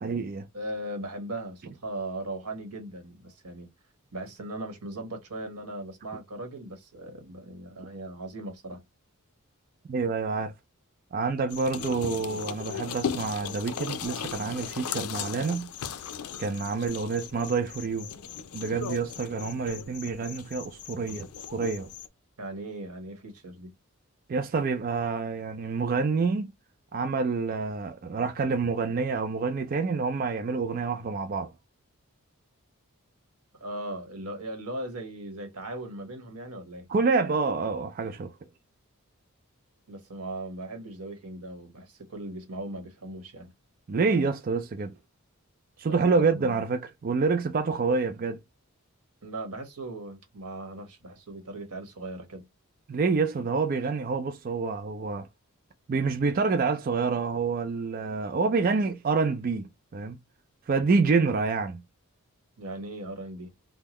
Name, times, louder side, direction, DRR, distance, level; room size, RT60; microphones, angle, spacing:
voice 1, 0.0-0.5 9.9-10.5 11.1-15.7 16.4-18.1 18.5-21.9 24.3-26.5 26.9-31.5 36.9-38.3 43.9-44.9 45.8-48.4 52.9-55.3 55.9-60.2 60.7-61.8, right 4 dB, 40° right, 0.3 m, -27 dB
voice 2, 0.5-3.7 4.1-8.8 22.4-23.7 33.6-36.9 39.9-43.5 45.8-46.4 49.2-52.4 62.6-63.5, right 1 dB, 85° right, 1.3 m, -38 dB
sound 1, 11.5-22.1, left 7 dB, 75° left, 0.5 m, -37 dB
3.6 x 2.1 x 2.9 m
head